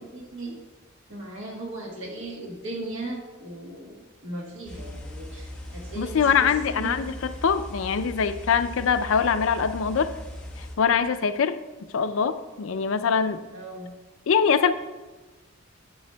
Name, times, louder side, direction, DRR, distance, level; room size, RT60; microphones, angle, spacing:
voice 1, 0.1-0.6 1.1-7.0 13.5-13.9, right 2 dB, 70° right, -1 dB, 1.2 m, -37 dB
sound 1, 4.7-10.8, left 1 dB, 5° left, 1.0 m, -39 dB
voice 2, 6.0-10.1 10.8-11.6 11.9-13.4 14.3-14.7, left 6 dB, 75° left, 11 dB, 0.4 m, -23 dB
9.3 x 7.9 x 2.2 m, 1.2 s
head